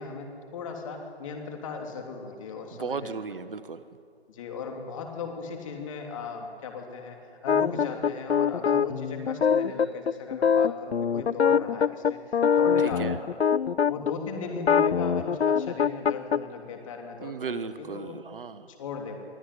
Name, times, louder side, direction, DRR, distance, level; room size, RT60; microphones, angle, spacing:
voice 1, 0.0-3.2 4.3-13.4 13.9-18.2 18.7-19.2, left 5 dB, 30° left, 3 dB, 3.0 m, -37 dB
voice 2, 2.7-3.8 12.8-13.2 17.2-18.7, right 5 dB, 55° right, 12 dB, 1.2 m, -35 dB
sound 1, 7.5-14.1 14.6-16.4, left 7 dB, 75° left, 0.7 m, -23 dB
23.5 x 14.0 x 9.7 m, 2.4 s
figure-of-eight pair, 155°, 32 cm